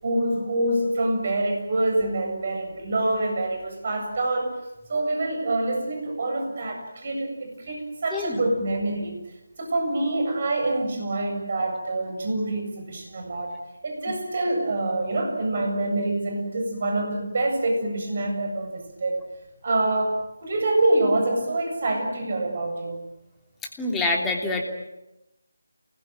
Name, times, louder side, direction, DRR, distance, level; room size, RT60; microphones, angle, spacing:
voice 1, 0.0-4.6 4.9-9.2 9.6-13.6 13.8-19.3 19.6-23.0, right 2 dB, 45° right, 4 dB, 7.8 m, -26 dB
voice 2, 23.8-24.6, left 2 dB, 5° left, 0 dB, 3.1 m, -26 dB
29.0 x 20.5 x 9.1 m, 0.94 s
figure-of-eight pair, 155°, 0 cm